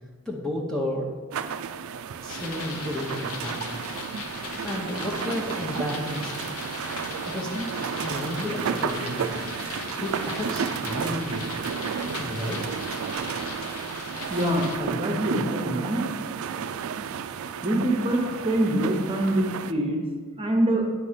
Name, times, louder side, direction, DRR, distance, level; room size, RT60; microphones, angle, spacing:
voice 1, 0.3-1.2 2.2-3.7 4.6-6.3 7.3-7.7 8.0-9.2 10.0-11.4 12.2-12.8, left 1 dB, 5° left, -3 dB, 0.7 m, -32 dB
sound 1, 1.3-19.7, right 7 dB, 75° right, 0.4 m, -32 dB
sound 2, 2.3-14.8, left 4 dB, 85° left, 0.8 m, -38 dB
voice 2, 14.3-16.0 17.6-20.0 20.4-20.9, right 1 dB, 25° right, 2 dB, 0.9 m, -25 dB
9.3 x 4.2 x 5.0 m, 1.5 s
head